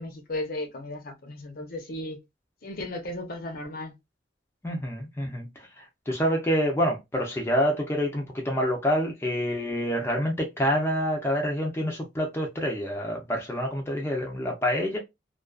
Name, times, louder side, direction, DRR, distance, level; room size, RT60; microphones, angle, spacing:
voice 1, 0.0-2.2 2.6-3.9, left 1 dB, 55° left, 0.7 m, -35 dB
voice 2, 4.6-15.0, equal, 15° left, 0.5 m, -27 dB
2.4 x 2.3 x 2.3 m
head